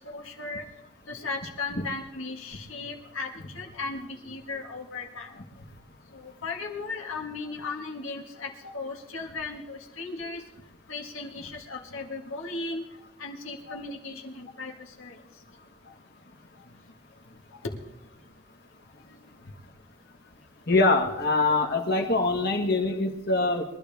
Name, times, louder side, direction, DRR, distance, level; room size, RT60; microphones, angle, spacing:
voice 1, 0.1-0.6 1.1-5.4 6.1-10.4 10.9-12.8 13.2-15.2 17.6-17.7, left 3 dB, 80° left, -1 dB, 1.9 m, -36 dB
voice 2, 20.7-23.6, left 3 dB, 50° left, 3 dB, 1.7 m, -24 dB
22.5 x 12.0 x 3.6 m, 0.89 s
head